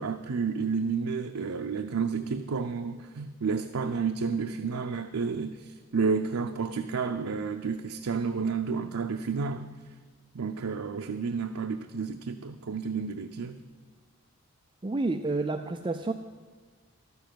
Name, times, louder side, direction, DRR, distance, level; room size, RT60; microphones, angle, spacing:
voice 1, 0.0-9.7 10.3-13.6, right 5 dB, 80° right, 6 dB, 0.6 m, -31 dB
voice 2, 14.8-16.1, right 3 dB, 20° right, 6 dB, 0.3 m, -29 dB
12.5 x 7.1 x 9.1 m, 1.4 s
head